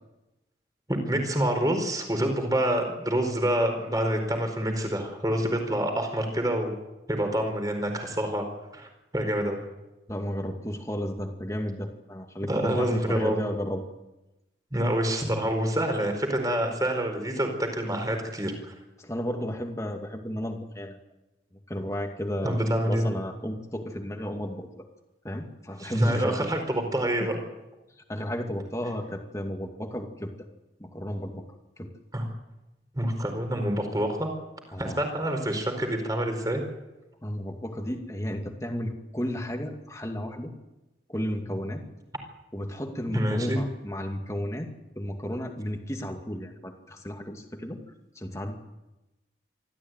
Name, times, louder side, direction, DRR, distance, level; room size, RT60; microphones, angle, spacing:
voice 1, 0.9-6.7 7.1-8.5 8.7-8.9 9.1-9.6 12.5-13.4 14.7-18.7 22.4-23.1 25.8-27.4 32.1-32.3 32.9-34.3 34.8-36.6 43.1-43.6, right 1 dB, 20° right, 5 dB, 4.4 m, -27 dB
voice 2, 10.1-13.8 19.0-21.0 21.7-24.7 25.2-26.5 27.2-27.3 28.1-30.3 30.8-31.4 31.8-31.9 34.7-35.0 37.2-40.5 41.1-41.8 42.5-44.7 45.0-47.8 48.2-48.6, equal, 15° left, 3 dB, 2.3 m, -33 dB
25.0 x 14.5 x 9.2 m, 1.0 s
head